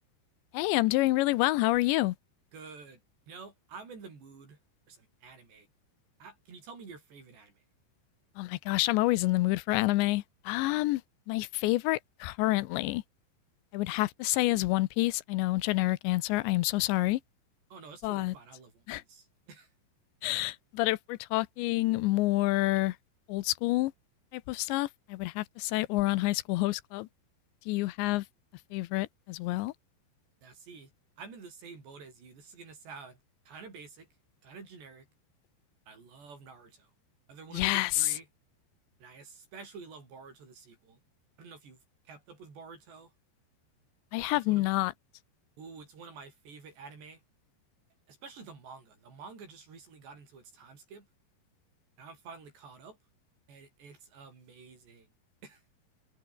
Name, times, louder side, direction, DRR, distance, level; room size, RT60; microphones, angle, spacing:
voice 1, 0.5-2.2 8.4-11.0 11.3-13.0 13.7-17.2 18.0-18.3 18.9-19.0 20.2-23.0 23.3-23.9 24.3-27.1 27.7-28.2 28.7-29.7 37.5-38.1 44.1-44.9, left 19 dB, 90° left, 3.1 m, -28 dB
voice 2, 2.5-3.0 3.3-4.6 4.9-5.7 6.2-7.6 17.7-19.7 30.4-30.9 31.2-33.2 33.5-34.1 34.4-35.1 35.9-36.9 37.3-38.3 39.0-41.0 41.4-43.1 44.2-44.7 45.6-47.2 48.1-51.1 52.0-53.0 53.5-55.1 55.4-55.6, right 5 dB, 70° right, 9.2 m, -49 dB
omnidirectional pair, 5.1 m